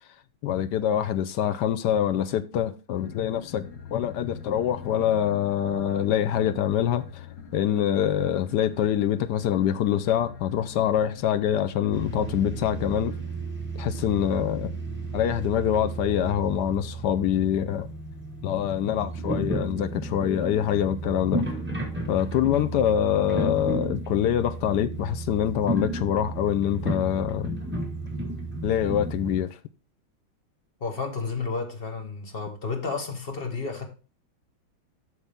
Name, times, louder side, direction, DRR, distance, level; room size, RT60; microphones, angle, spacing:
voice 1, 0.4-7.3 7.5-13.1 13.8-14.8 15.1-17.9 18.4-21.4 22.1-27.5 28.6-29.6, left 10 dB, 70° left, 1.0 m, -25 dB
sound 1, 2.9-13.2, left 5 dB, 55° left, 1.5 m, -43 dB
sound 2, 11.9-29.4, right 2 dB, 5° right, 1.5 m, -33 dB
voice 2, 30.8-33.9, left 4 dB, 30° left, 1.4 m, -32 dB
8.2 x 6.4 x 3.5 m
omnidirectional pair, 2.2 m